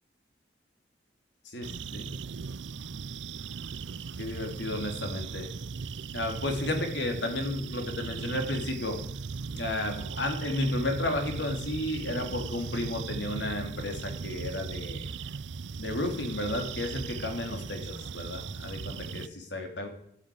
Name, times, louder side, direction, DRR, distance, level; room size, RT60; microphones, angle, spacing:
voice 1, 1.4-2.1 4.2-5.5 6.1-9.0 9.5-15.1 15.8-19.9, left 1 dB, 80° left, 4 dB, 3.4 m, -33 dB
sound 1, 1.6-19.3, right 5 dB, 80° right, 0.5 m, -38 dB
13.5 x 10.5 x 8.7 m, 0.72 s
head